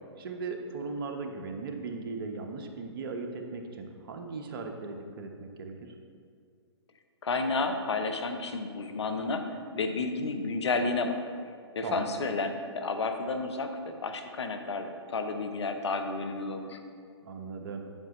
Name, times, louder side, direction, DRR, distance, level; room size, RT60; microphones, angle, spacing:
voice 1, 0.2-5.9 11.8-12.2 17.2-17.8, right 4 dB, 55° right, 4 dB, 1.0 m, -38 dB
voice 2, 7.2-9.5 9.8-11.2 11.8-16.8, left 3 dB, 75° left, 6 dB, 0.8 m, -31 dB
9.0 x 7.6 x 3.1 m, 2.2 s
figure-of-eight pair, 125°, 15 cm